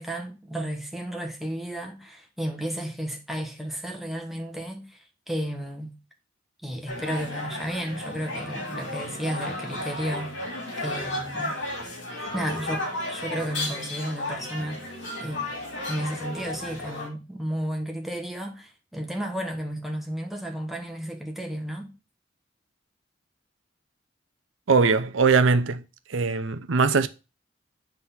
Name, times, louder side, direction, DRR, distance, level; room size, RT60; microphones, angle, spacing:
voice 1, 0.0-6.0 6.6-10.3 10.8-11.6 12.3-15.5 15.9-21.9, right 1 dB, ahead, 1.4 m, -33 dB
sound 1, 6.9-17.1, left 1 dB, 65° left, 3.3 m, -33 dB
voice 2, 24.7-25.8 26.1-27.1, right 4 dB, 80° right, 0.7 m, -21 dB
7.8 x 3.8 x 5.7 m
head